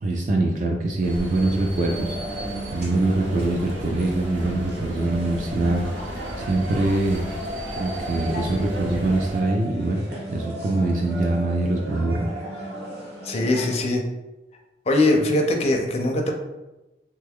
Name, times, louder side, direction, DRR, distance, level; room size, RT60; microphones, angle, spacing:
voice 1, 0.0-5.9 6.4-7.2 7.8-12.4, right 2 dB, 45° right, 1 dB, 0.3 m, -24 dB
sound 1, 1.0-9.4, equal, 90° right, 0.8 m, -35 dB
sound 2, 1.1-3.4 5.2-13.0, right 1 dB, 15° right, 0.8 m, -40 dB
sound 3, 1.7-13.8, right 1 dB, 60° right, 1.0 m, -37 dB
voice 2, 13.2-14.0 14.9-16.4, left 2 dB, 35° left, 2 dB, 0.4 m, -21 dB
3.1 x 2.3 x 3.4 m, 1.0 s
head